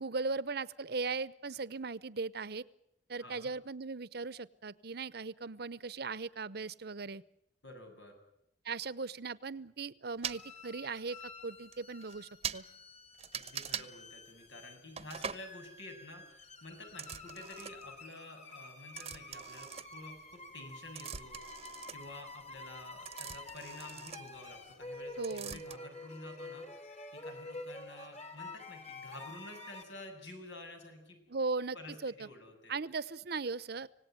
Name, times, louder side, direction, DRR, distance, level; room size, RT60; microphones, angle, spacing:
voice 1, 0.0-2.6 3.1-7.2 8.6-11.2 11.4-12.6 25.2-25.6 31.3-31.8 32.0-32.3 32.7-33.9, right 4 dB, 65° right, 18 dB, 0.9 m, -38 dB
voice 2, 3.2-3.5 7.6-8.1 13.3-21.4 21.9-31.2 31.7-32.7, left 2 dB, 85° left, 5 dB, 7.8 m, -50 dB
sound 1, 10.2-10.4 11.3-11.4 11.7-11.8 12.0-12.2 12.4-12.6 13.2-13.9 15.0-15.5 16.9-18.0 18.9-20.3 20.6-24.9 25.2-25.8, right 7 dB, 35° right, 0.9 m, -42 dB
sound 2, 10.3-29.8, left 2 dB, 40° left, 3.5 m, -49 dB
26.0 x 18.5 x 9.2 m, 0.78 s
head